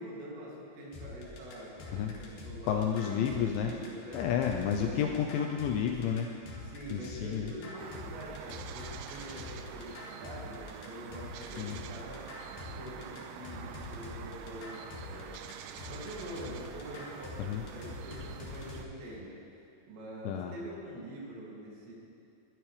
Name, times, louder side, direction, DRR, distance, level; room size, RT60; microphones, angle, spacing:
voice 1, 0.0-4.2 4.7-5.1 6.6-15.4 15.9-21.9, equal, 60° right, -5 dB, 4.6 m, -45 dB
sound 1, 0.9-18.8, left 3 dB, 55° left, 2.9 m, -45 dB
voice 2, 2.6-3.7 4.1-6.3 6.9-7.5 11.6-11.8 17.4-17.6 20.3-20.5, left 8 dB, 85° left, 2 dB, 2.7 m, -31 dB
sound 2, 7.8-18.9, right 9 dB, 85° right, 3.2 m, -47 dB
21.5 x 12.5 x 3.3 m, 2.5 s
omnidirectional pair, 5.9 m